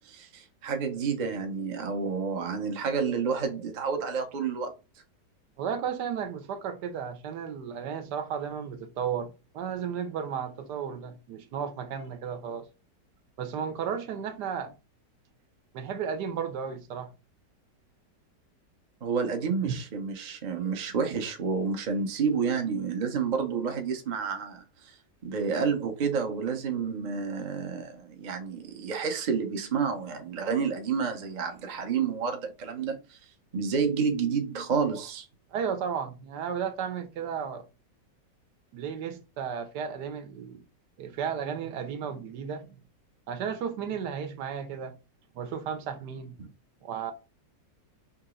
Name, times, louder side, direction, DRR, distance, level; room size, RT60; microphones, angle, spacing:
voice 1, 0.0-4.7 19.0-24.6 25.2-33.2 33.5-35.3 46.4-46.5, right 5 dB, 90° right, 0.4 m, -29 dB
voice 2, 5.6-12.7 13.4-14.7 15.7-17.1 19.6-19.8 35.5-37.6 38.7-40.6 41.0-42.7 43.3-44.9 45.4-46.4 46.8-47.1, right 7 dB, 75° right, 1.3 m, -34 dB
3.8 x 2.9 x 3.7 m
omnidirectional pair, 1.9 m